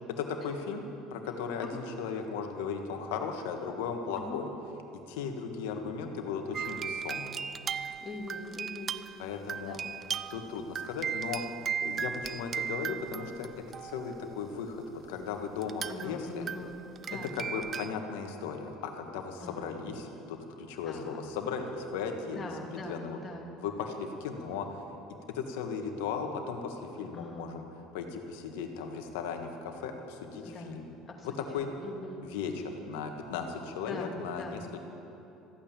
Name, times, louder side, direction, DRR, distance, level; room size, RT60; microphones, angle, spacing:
voice 1, 0.2-0.8 1.1-4.5 5.1-7.5 9.2-9.8 10.3-11.4 11.8-13.5 13.8-16.5 17.3-23.2 23.6-24.8 25.3-27.6 27.9-30.8 31.2-31.7 32.2-34.6, left 5 dB, 80° left, 4 dB, 1.6 m, -36 dB
sound 1, 6.5-14.3 15.6-16.1 16.5-17.9, right 7 dB, 40° right, 0.5 m, -37 dB
voice 2, 8.0-9.0 9.6-9.9 15.9-16.8 17.1-17.3 19.4-19.8 20.8-21.2 22.3-23.5 27.1-27.5 30.4-30.8 31.1-31.3 31.6-32.3 33.9-34.8, left 2 dB, 30° left, 1 dB, 2.5 m, -42 dB
14.5 x 8.7 x 8.7 m, 3.0 s
hypercardioid pair, 80°, 0 cm